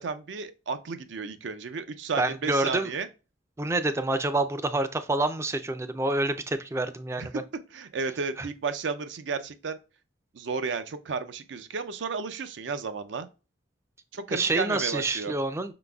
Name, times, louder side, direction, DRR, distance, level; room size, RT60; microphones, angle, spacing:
voice 1, 0.0-3.1 7.2-7.3 7.7-9.8 10.3-13.3 14.1-15.3, right 5 dB, 75° right, 0.5 m, -33 dB
voice 2, 2.2-2.9 3.6-7.4 8.4-8.5 14.3-15.7, right 2 dB, 15° right, 0.3 m, -27 dB
5.7 x 3.8 x 2.3 m
head